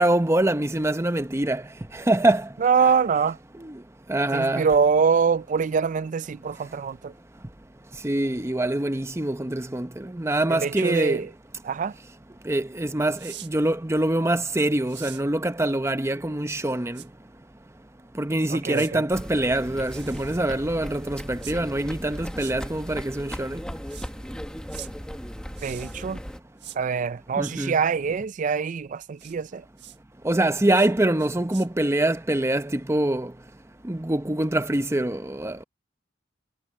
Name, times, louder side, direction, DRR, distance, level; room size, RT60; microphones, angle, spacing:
voice 1, 0.0-1.6 2.1-2.5 3.6-3.7 4.1-4.7 8.0-11.2 12.5-17.0 18.2-23.6 27.4-27.8 30.2-33.3 33.9-35.6, right 1 dB, 15° right, 0.8 m, -24 dB
voice 2, 2.6-3.4 4.3-7.1 10.5-11.3 11.6-11.9 18.5-19.0 25.6-26.2 26.8-29.6, right 6 dB, 40° right, 0.3 m, -24 dB
sound 1, 13.1-13.5 14.9-15.2 16.9-17.1 18.7-18.9 19.8-20.5 21.4-21.6 22.3-22.5 23.9-24.1 24.7-24.9 25.5-26.0 26.6-26.8 29.2-29.3 29.8-30.0 30.7-30.9 31.2-31.7, right 13 dB, 60° right, 1.5 m, -43 dB
sound 2, 19.1-26.4, equal, 5° left, 1.3 m, -37 dB
head